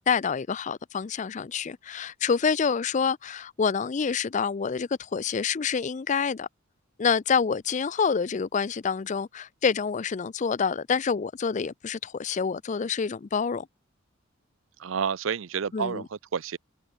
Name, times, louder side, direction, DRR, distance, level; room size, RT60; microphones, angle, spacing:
voice 1, 0.0-6.5 7.0-13.7 15.7-16.0, left 6 dB, 40° left, 0.4 m, -27 dB
voice 2, 14.8-16.6, right 6 dB, 85° right, 0.5 m, -30 dB
head